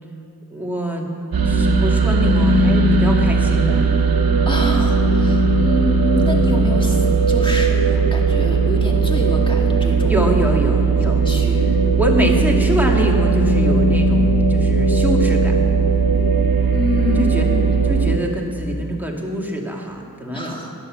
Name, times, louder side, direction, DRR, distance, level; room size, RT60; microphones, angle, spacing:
voice 1, 0.5-1.1 1.4-3.8 10.1-11.2 11.9-15.6 17.2-17.5 17.8-20.6, equal, 5° right, -1 dB, 1.9 m, -24 dB
sound 1, 1.3-18.2, right 3 dB, 75° right, 1.1 m, -17 dB
voice 2, 4.5-10.2 11.2-11.6 16.7-17.6 20.3-20.7, left 1 dB, 15° left, 0 dB, 2.1 m, -27 dB
11.0 x 10.0 x 7.2 m, 2.6 s
wide cardioid pair, 75°, 36 cm